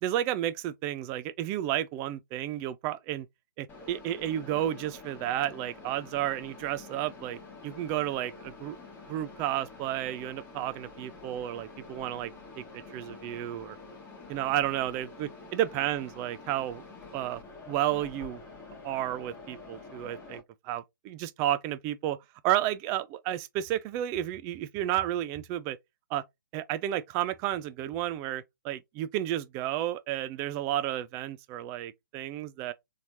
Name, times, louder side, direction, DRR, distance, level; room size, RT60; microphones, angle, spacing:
voice 1, 0.0-3.3 3.6-8.8 9.1-12.3 12.6-13.8 14.3-16.8 17.1-17.4 17.7-18.4 18.8-22.2 22.4-25.8 26.1-26.2 26.5-32.7, right 12 dB, 20° right, 0.4 m, -32 dB
Mechanisms, 3.7-20.4, left 3 dB, 15° left, 1.1 m, -48 dB
4.1 x 3.2 x 2.5 m
figure-of-eight pair, 130°, 12 cm